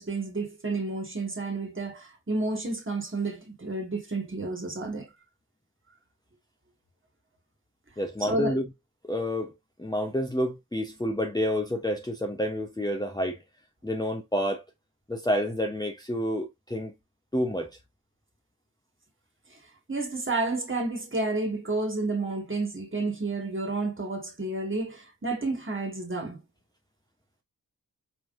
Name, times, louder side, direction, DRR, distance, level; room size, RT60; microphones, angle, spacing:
voice 1, 0.0-5.1 8.2-8.6 19.9-26.4, right 2 dB, 30° right, 1.8 m, -30 dB
voice 2, 8.0-8.7 9.0-9.5 9.8-13.4 13.8-14.6 15.1-16.9 17.3-17.7, equal, 10° left, 0.9 m, -29 dB
4.6 x 3.6 x 2.5 m
cardioid pair, 45°, 39 cm